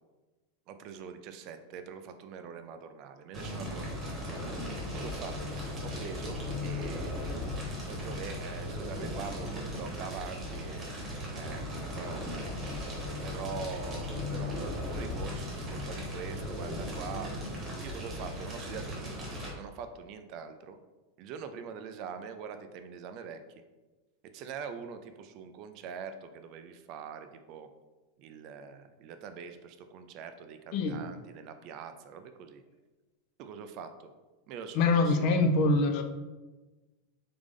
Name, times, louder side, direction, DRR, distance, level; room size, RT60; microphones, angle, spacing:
voice 1, 0.7-4.1 4.9-5.6 5.8-7.4 7.9-10.9 11.3-12.6 13.1-14.0 14.3-17.3 17.8-19.2 19.5-20.8 21.2-23.4 24.3-27.7 28.2-32.6 33.4-34.1 34.5-35.4, right 6 dB, 40° right, 8 dB, 0.3 m, -43 dB
Fire, 3.3-19.5, left 1 dB, 20° right, 1.1 m, -37 dB
voice 2, 34.7-36.0, left 3 dB, 45° left, 6 dB, 0.5 m, -24 dB
3.7 x 3.4 x 3.6 m, 1.2 s
supercardioid pair, 165°, 0 cm